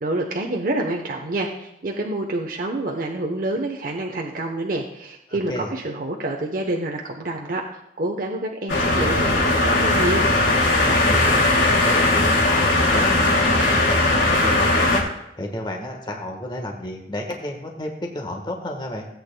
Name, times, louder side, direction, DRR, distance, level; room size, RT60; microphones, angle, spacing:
voice 1, 0.0-10.3, right 2 dB, 50° right, 1 dB, 0.9 m, -27 dB
voice 2, 5.3-5.7 10.9-11.4 11.7-15.0 15.4-19.1, left 1 dB, 25° left, 1 dB, 1.3 m, -31 dB
sound 1, 8.7-15.0, left 2 dB, 85° left, 2.5 m, -18 dB
16.5 x 8.8 x 2.2 m, 0.83 s
head